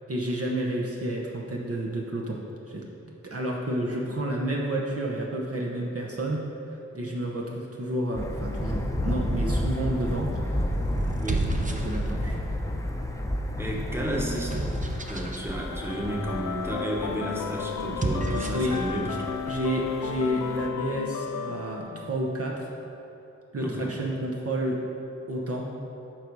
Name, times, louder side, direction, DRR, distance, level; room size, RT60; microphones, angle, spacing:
voice 1, 0.1-2.4 2.7-2.8 3.2-6.4 6.9-10.7 11.0-12.4 18.5-18.8 19.1-19.2 19.4-22.7 23.5-24.8 25.3-25.7, right 1 dB, 50° right, -2 dB, 1.0 m, -30 dB
Thunder, 8.1-20.7, left 1 dB, 10° left, 0.7 m, -32 dB
sound 1, 9.8-10.2 11.0-12.4 13.1-15.5 17.8-18.8, right 2 dB, 25° right, 0.7 m, -31 dB
voice 2, 11.2-11.5 13.6-14.5 15.1-19.2 23.6-23.9, right 1 dB, 10° right, -2 dB, 1.3 m, -32 dB
sound 2, 15.5-22.5, left 8 dB, 80° left, 0.5 m, -34 dB
7.7 x 4.8 x 5.3 m, 2.8 s
cardioid pair, 50°, 31 cm